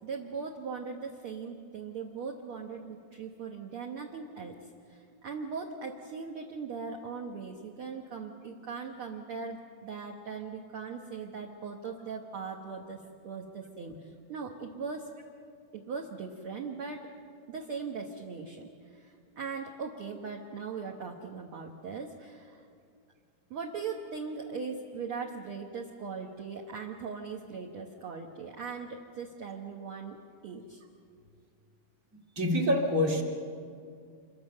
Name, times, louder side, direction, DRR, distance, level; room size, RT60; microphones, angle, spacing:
voice 1, 0.0-4.5 4.9-15.1 15.7-17.1 17.5-22.7 23.5-30.2 30.4-30.8, right 5 dB, 50° right, 1 dB, 1.8 m, -39 dB
voice 2, 32.4-33.2, left 1 dB, 25° right, 2 dB, 2.3 m, -26 dB
27.5 x 23.5 x 6.7 m, 2.3 s
omnidirectional pair, 4.0 m